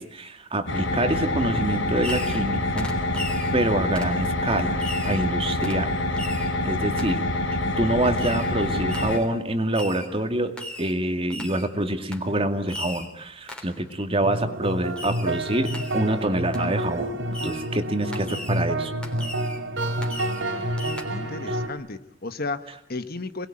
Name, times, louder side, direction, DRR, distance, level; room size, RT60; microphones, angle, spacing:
voice 1, 0.0-2.9 3.5-6.0 6.6-7.2 7.8-17.2 17.4-18.9, right 1 dB, 30° right, 6 dB, 2.3 m, -26 dB
sound 1, 0.7-9.2, left 1 dB, 85° left, 3.7 m, -26 dB
Fireworks, 2.0-2.5 2.8-3.5 4.0-4.2 4.8-5.2 5.6-5.8 6.2-6.5 7.0-7.1 8.2-8.5 8.9-9.3 9.7-10.1 10.6-11.0 11.3-11.7 12.1-12.3 12.7-13.1 13.5-13.8 15.0-15.4 15.6-16.0 16.5-16.7 17.3-17.7 18.1-18.6 19.0-19.6 20.0-20.5 20.8-21.0, left 1 dB, 5° left, 3.5 m, -37 dB
sound 2, 14.2-21.7, right 1 dB, 85° right, 3.3 m, -29 dB
voice 2, 19.9-20.8 21.1-23.5, left 3 dB, 50° left, 10 dB, 1.4 m, -35 dB
29.0 x 20.5 x 8.9 m, 0.71 s
head